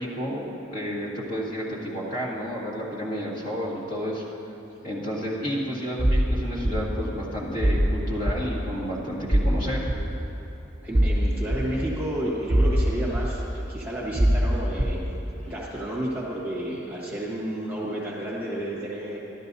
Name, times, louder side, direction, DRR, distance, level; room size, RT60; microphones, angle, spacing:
voice 1, 0.0-4.2 4.8-9.9, equal, 40° left, -6 dB, 1.9 m, -31 dB
sound 1, 6.0-6.2 6.6-6.8 7.6-7.9 8.3-8.4 9.3-9.5 9.9-10.0 10.9-11.1 11.5-11.6 12.5-12.8 13.1-13.2 14.1-14.4 14.8-14.9, right 1 dB, 5° left, 0.8 m, -20 dB
voice 2, 10.8-15.0 15.5-19.2, right 1 dB, 10° right, -6 dB, 1.5 m, -31 dB
13.0 x 12.5 x 2.7 m, 3.0 s
head